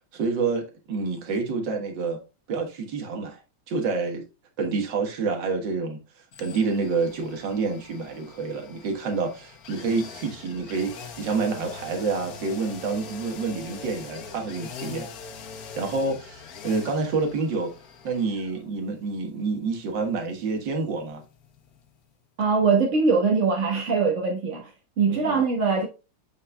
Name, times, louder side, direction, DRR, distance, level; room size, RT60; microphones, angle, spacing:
voice 1, 0.1-2.2 2.5-3.4 3.7-4.2 4.6-6.0 6.4-15.1 15.8-17.7 18.0-21.2 25.1-25.4, right 4 dB, 80° right, 2.1 m, -28 dB
sound 1, 6.3-22.1 22.4-22.5, left 5 dB, 60° left, 1.4 m, -43 dB
voice 2, 22.4-25.9, right 4 dB, 45° right, 1.6 m, -22 dB
8.4 x 5.3 x 2.2 m
omnidirectional pair, 2.0 m